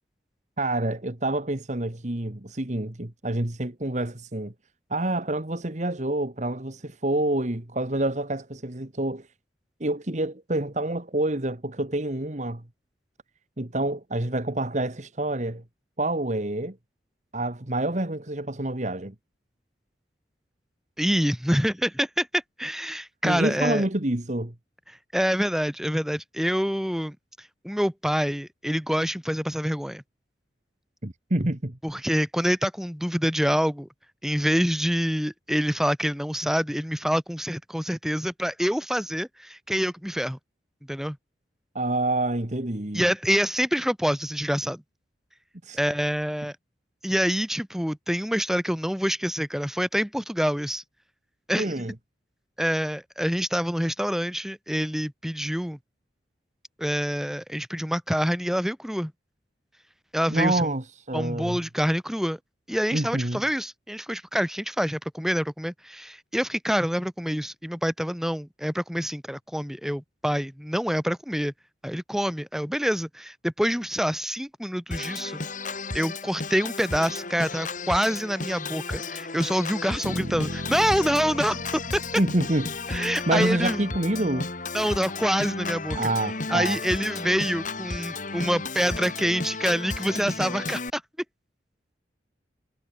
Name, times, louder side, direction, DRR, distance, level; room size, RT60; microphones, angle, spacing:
voice 1, 0.6-4.5 4.9-9.3 9.8-12.6 13.6-15.6 16.0-16.8 17.3-19.2 23.2-24.5 31.0-31.8 41.8-43.1 45.6-45.8 51.6-51.9 60.3-61.6 62.9-63.4 82.2-82.7 83.3-84.5 85.9-86.8, right 1 dB, 40° right, 1.8 m, -27 dB
voice 2, 21.0-23.8 25.1-30.0 31.8-33.9 34.2-40.4 40.9-41.2 42.9-44.8 45.7-46.6 47.0-50.8 51.5-51.7 52.6-55.8 56.8-59.1 60.1-60.7 61.1-62.4 62.7-71.5 71.8-75.4 75.9-82.0 82.9-83.8 84.7-86.1 86.5-91.0, equal, ahead, 3.6 m, -26 dB
Organ, 74.9-90.9, left 3 dB, 45° left, 2.6 m, -33 dB
sound 1, 80.0-84.1, equal, 55° right, 7.4 m, -38 dB
head